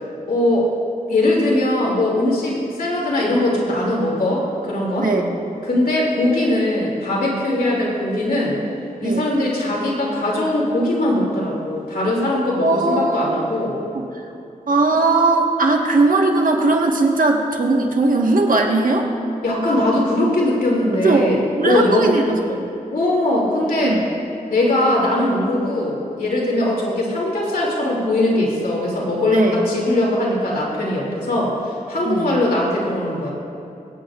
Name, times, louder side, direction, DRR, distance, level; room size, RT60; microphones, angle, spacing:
voice 1, 0.3-0.7 1.1-5.1 5.7-8.6 9.0-13.8 19.4-21.4 21.6-22.1 22.9-23.9 24.5-33.3, left 1 dB, 90° left, -4 dB, 2.7 m, -20 dB
voice 2, 5.0-5.3 9.0-9.3 12.6-13.5 13.9-14.3 14.7-19.1 21.0-22.7 23.8-24.1 29.3-29.6 32.0-32.3, right 3 dB, 70° right, 1 dB, 1.5 m, -19 dB
24.0 x 8.6 x 2.5 m, 2.8 s
wide cardioid pair, 70°, 15 cm